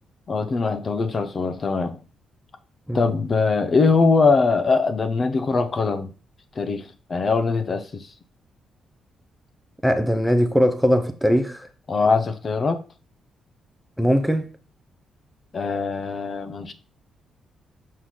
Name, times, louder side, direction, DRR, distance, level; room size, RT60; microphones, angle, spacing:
voice 1, 0.3-2.0 2.9-6.1 6.6-8.1 11.9-12.8 15.5-16.7, left 4 dB, 35° left, 0.8 m, -22 dB
voice 2, 9.8-11.7 14.0-14.5, equal, ahead, 0.7 m, -20 dB
6.5 x 3.8 x 5.9 m
cardioid pair, 145°, 0 cm